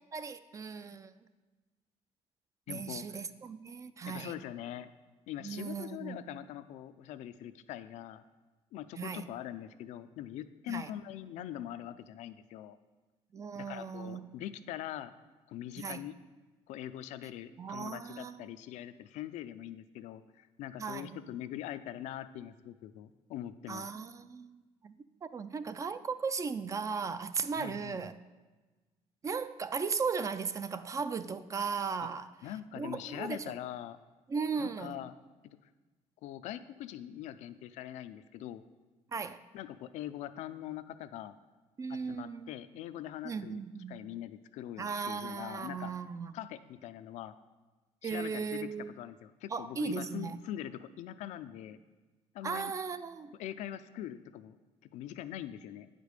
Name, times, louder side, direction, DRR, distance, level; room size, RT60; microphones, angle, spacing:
voice 1, 0.1-1.1 2.7-4.3 5.4-6.2 9.0-9.3 10.7-10.9 13.3-14.2 15.8-16.0 17.6-18.5 20.8-21.2 23.7-24.9 25.2-28.1 29.2-32.3 32.7-33.5 34.3-35.0 39.1-39.4 41.8-42.5 43.2-44.0 44.8-46.3 48.0-48.9 49.5-50.4 52.4-53.3, right 5 dB, 25° right, 0.4 m, -37 dB
voice 2, 2.7-3.2 4.1-4.9 5.3-8.2 8.7-12.8 13.5-15.1 15.5-16.1 16.7-23.9 27.5-28.0 32.4-34.0 34.6-35.1 36.2-38.6 39.5-41.3 41.9-43.6 43.9-45.9 46.3-47.3 48.0-48.7 49.0-51.8 52.3-52.7 53.4-54.6 54.9-55.9, left 12 dB, 85° left, 0.5 m, -42 dB
8.9 x 5.1 x 6.5 m
cardioid pair, 135°, 12 cm